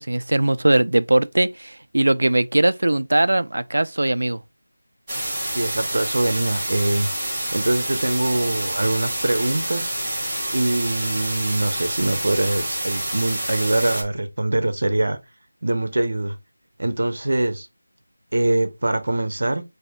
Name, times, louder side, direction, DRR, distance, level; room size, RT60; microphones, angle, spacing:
voice 1, 0.0-4.4, right 1 dB, 65° right, 0.4 m, -20 dB
sound 1, 5.1-14.0, right 1 dB, 5° right, 1.3 m, -27 dB
voice 2, 5.5-7.1 7.5-9.9 10.5-15.2 15.6-16.3 16.8-17.7 18.3-19.6, right 1 dB, 50° right, 0.9 m, -23 dB
7.4 x 2.8 x 2.3 m
figure-of-eight pair, 180°, 0 cm